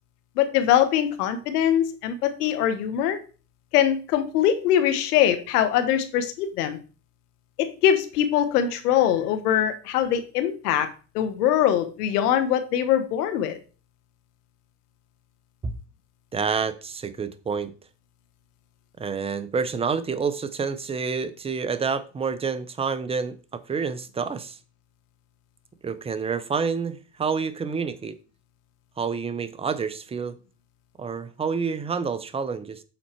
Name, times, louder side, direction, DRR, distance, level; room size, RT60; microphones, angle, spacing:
voice 1, 0.4-3.2 3.7-6.8 7.6-10.9 11.1-13.6, left 10 dB, 85° left, 1.2 m, -22 dB
voice 2, 16.3-17.7 19.0-24.6 25.8-28.1 29.0-30.4 31.0-32.8, right 5 dB, 15° right, 0.5 m, -28 dB
7.2 x 4.2 x 4.5 m
supercardioid pair, 105°, 45 cm